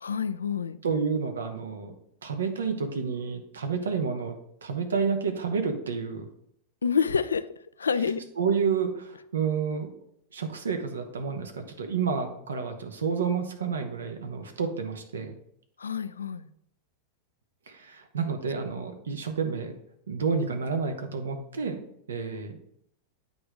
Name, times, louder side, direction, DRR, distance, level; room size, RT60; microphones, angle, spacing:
voice 1, 0.0-0.8 6.8-7.4 7.8-8.2 15.8-16.5, left 6 dB, 75° left, 15 dB, 0.3 m, -27 dB
voice 2, 0.8-1.9 2.2-4.4 4.6-6.3 8.4-9.9 10.3-15.4 17.7-19.7 20.1-21.8 22.1-22.6, right 5 dB, 70° right, 6 dB, 0.9 m, -30 dB
8.5 x 3.4 x 5.0 m, 0.73 s
figure-of-eight pair, 90°, 0 cm